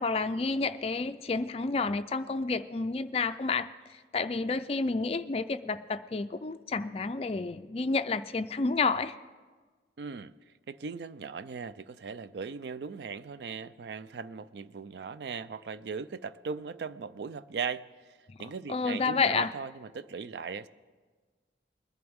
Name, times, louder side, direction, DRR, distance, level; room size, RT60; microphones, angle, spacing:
voice 1, 0.0-9.2 18.3-18.4 18.7-19.5, left 4 dB, 35° left, 11 dB, 0.4 m, -30 dB
voice 2, 10.0-10.3 10.7-20.7, right 5 dB, 70° right, 15 dB, 0.4 m, -38 dB
21.0 x 11.0 x 3.5 m, 1.4 s
head